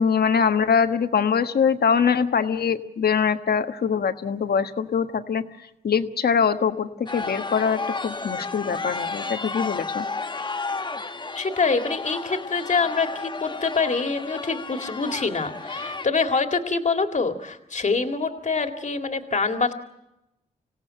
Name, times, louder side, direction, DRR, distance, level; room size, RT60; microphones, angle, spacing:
voice 1, 0.0-5.4 5.8-10.0, left 6 dB, 75° left, 8 dB, 1.4 m, -23 dB
sound 1, 7.1-16.1, left 3 dB, 30° left, 1.0 m, -32 dB
voice 2, 11.3-19.7, left 4 dB, 45° left, 6 dB, 2.2 m, -25 dB
26.0 x 17.0 x 8.9 m, 0.90 s
cardioid pair, 80°, 16 cm